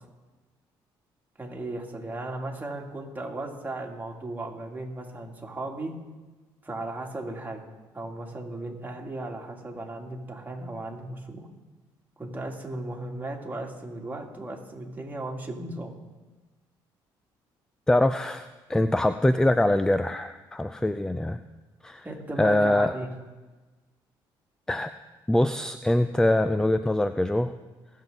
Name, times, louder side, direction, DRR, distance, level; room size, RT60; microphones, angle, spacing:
voice 1, 1.4-5.9 6.6-7.6 7.9-11.5 12.2-15.9 22.0-23.1, right 2 dB, 20° right, 0 dB, 2.7 m, -36 dB
voice 2, 17.9-21.4 21.8-22.1 22.4-22.9 24.7-24.9 25.3-27.5, left 1 dB, 5° left, 11 dB, 0.5 m, -23 dB
21.0 x 7.3 x 4.0 m, 1.2 s
supercardioid pair, 70°, 9 cm